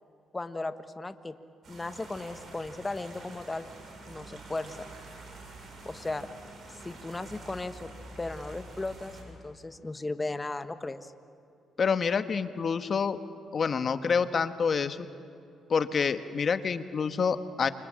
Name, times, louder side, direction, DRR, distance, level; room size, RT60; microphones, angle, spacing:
voice 1, 0.3-1.4 1.7-3.7 4.1-4.8 5.8-6.3 6.8-7.9 8.2-11.1, left 2 dB, 20° left, 10 dB, 1.4 m, -36 dB
sound 1, 1.6-9.2, right 2 dB, 55° right, 6.8 m, -47 dB
voice 2, 11.8-13.2 13.5-15.1 15.7-17.7, left 6 dB, 45° left, 10 dB, 1.3 m, -27 dB
28.5 x 25.5 x 7.7 m, 2.6 s
cardioid pair, 90°, 0 cm